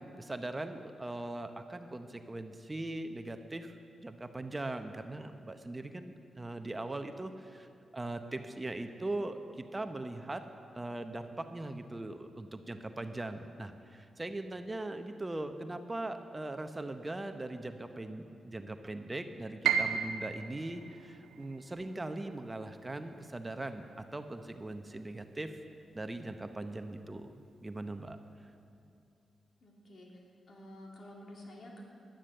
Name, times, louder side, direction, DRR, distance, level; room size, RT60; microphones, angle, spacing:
voice 1, 0.0-3.8 4.0-10.4 10.7-25.5 25.9-28.2, right 2 dB, 25° right, 8 dB, 0.8 m, -40 dB
Piano, 19.6-25.6 25.9-27.1 27.5-27.6 28.3-28.6, right 8 dB, 85° right, 0.7 m, -37 dB
voice 2, 29.6-30.1 30.5-31.8, left 1 dB, 60° left, -1 dB, 2.8 m, -50 dB
11.5 x 10.0 x 6.6 m, 2.5 s
supercardioid pair, 45°, 0 cm